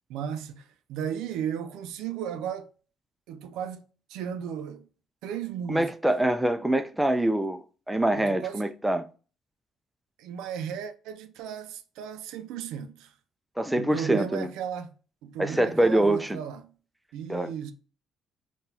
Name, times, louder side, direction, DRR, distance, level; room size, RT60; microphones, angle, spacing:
voice 1, 0.1-2.7 3.3-3.8 4.1-4.9 5.2-5.9 8.2-8.6 10.2-13.1 13.7-15.0 15.2-16.7 17.1-17.7, right 8 dB, 80° right, 0.4 m, -35 dB
voice 2, 5.7-9.1 13.6-14.5 15.4-16.4 17.3-17.5, right 1 dB, 5° right, 0.4 m, -25 dB
3.8 x 2.3 x 2.7 m
supercardioid pair, 65°, 0 cm